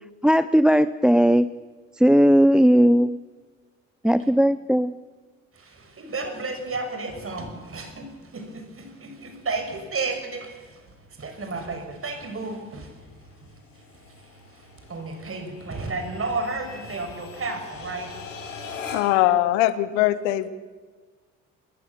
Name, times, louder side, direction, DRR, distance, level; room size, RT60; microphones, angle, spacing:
voice 1, 0.2-1.5 2.0-3.2 4.0-4.9, equal, ahead, 14 dB, 0.6 m, -17 dB
voice 2, 5.5-10.9 11.2-12.9 14.9-18.1, right 3 dB, 35° right, 6 dB, 6.2 m, -32 dB
sound 1, 9.1-19.3, left 4 dB, 85° left, 3.5 m, -43 dB
voice 3, 18.9-20.5, left 14 dB, 70° left, 15 dB, 1.2 m, -21 dB
26.0 x 21.5 x 7.1 m, 1.4 s
figure-of-eight pair, 50°, 37 cm